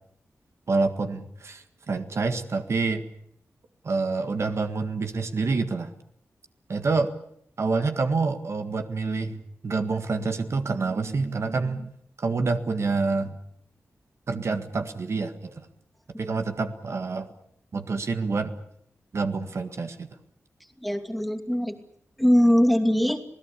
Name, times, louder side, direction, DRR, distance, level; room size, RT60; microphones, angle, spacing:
voice 1, 0.7-3.1 3.8-5.9 6.7-7.1 7.6-11.9 12.2-13.4 14.3-15.7 16.2-17.3 17.7-18.5 19.1-20.1, right 4 dB, 60° right, 7 dB, 1.8 m, -27 dB
voice 2, 20.8-21.8 22.2-23.3, equal, ahead, 4 dB, 2.6 m, -21 dB
27.5 x 17.5 x 8.4 m, 0.69 s
wide cardioid pair, 80°, 5 cm